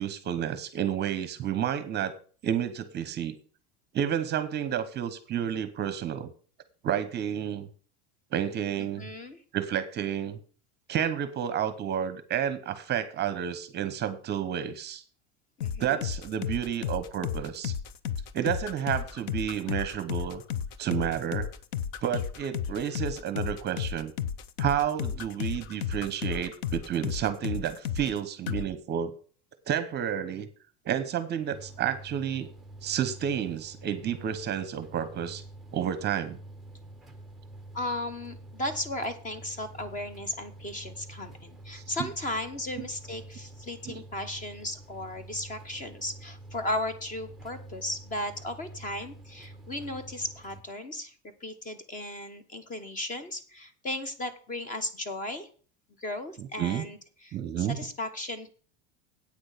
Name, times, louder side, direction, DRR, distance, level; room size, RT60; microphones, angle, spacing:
voice 1, 0.0-2.1 2.4-3.3 3.9-6.3 6.8-7.7 8.3-9.1 9.5-10.4 10.9-15.0 15.8-17.8 18.3-20.4 20.8-21.5 22.0-24.1 24.6-29.1 29.7-30.5 30.8-32.5 32.8-35.4 35.7-36.4 41.8-42.1 42.8-42.9 43.9-44.0 56.4-56.8 57.3-57.8, right 9 dB, 30° right, 12 dB, 0.9 m, -30 dB
voice 2, 8.8-9.4 15.6-16.0 37.7-51.1 51.4-55.5 56.0-58.5, left 1 dB, 20° left, 11 dB, 1.1 m, -36 dB
sound 1, 15.6-28.2 28.5-28.7, left 8 dB, 70° left, 0.9 m, -33 dB
sound 2, 31.5-50.6, right 2 dB, ahead, 0.7 m, -47 dB
8.7 x 6.2 x 8.2 m, 0.42 s
supercardioid pair, 155°, 34 cm